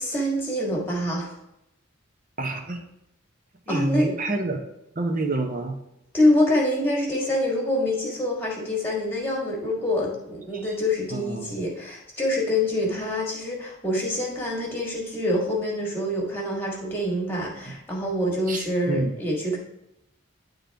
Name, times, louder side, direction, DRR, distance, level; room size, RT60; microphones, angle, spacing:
voice 1, 0.0-1.3 3.7-4.1 6.1-19.6, left 1 dB, 10° left, -2 dB, 1.7 m, -25 dB
voice 2, 2.4-2.8 3.7-4.6 5.0-5.8 10.5-10.7 11.1-11.5 17.7-17.8 18.5-19.1, right 2 dB, 40° right, 4 dB, 0.9 m, -28 dB
10.5 x 3.8 x 3.5 m, 0.84 s
head